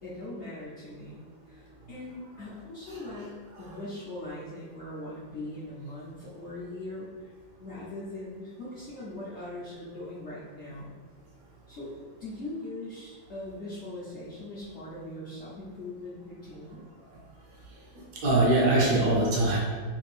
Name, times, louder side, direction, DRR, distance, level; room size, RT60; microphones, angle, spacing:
voice 1, 0.0-1.2 1.5-7.3 7.6-11.0 11.7-11.9 12.2-16.9, left 1 dB, 70° left, -10 dB, 0.6 m, -40 dB
voice 2, 17.9-19.6, right 2 dB, 65° right, -3 dB, 1.2 m, -23 dB
3.4 x 2.5 x 3.3 m, 1.5 s
omnidirectional pair, 2.1 m